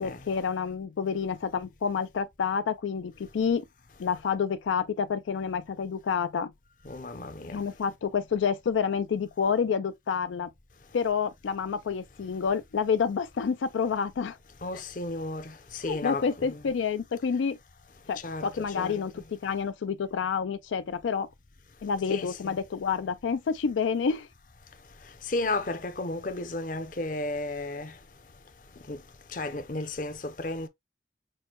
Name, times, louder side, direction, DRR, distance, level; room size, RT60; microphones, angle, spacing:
voice 1, 0.0-3.7 4.0-6.5 7.5-10.5 10.9-14.4 15.8-17.6 18.1-21.3 21.8-24.3, left 6 dB, 90° left, 0.4 m, -28 dB
voice 2, 6.9-7.6 14.6-16.6 18.2-18.5 18.8-19.0 22.1-22.5 25.3-27.9 28.9-29.0 29.3-30.7, left 2 dB, 45° left, 0.7 m, -33 dB
6.3 x 2.2 x 2.9 m
head